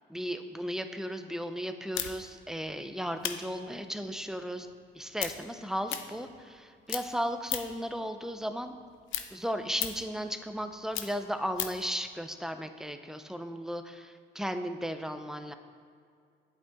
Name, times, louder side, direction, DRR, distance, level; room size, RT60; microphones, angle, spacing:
voice 1, 0.1-4.7 4.9-8.8 9.3-15.5, equal, ahead, 8 dB, 0.6 m, -35 dB
sound 1, 1.9-6.6 6.9-7.9 8.3-11.9, left 10 dB, 80° left, 0.6 m, -37 dB
8.6 x 8.0 x 3.5 m, 2.3 s
cardioid pair, 90°, 20 cm